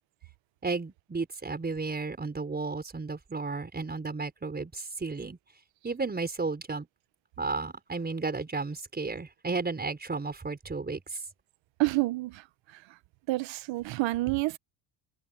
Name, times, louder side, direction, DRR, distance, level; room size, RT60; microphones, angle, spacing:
voice 1, 0.6-5.4 5.8-6.9 7.4-11.2, right 3 dB, 20° right, 5.0 m, -33 dB
voice 2, 11.8-12.3 13.3-14.6, right 20 dB, 65° right, 1.1 m, -28 dB
open air
cardioid pair, 110°, 48 cm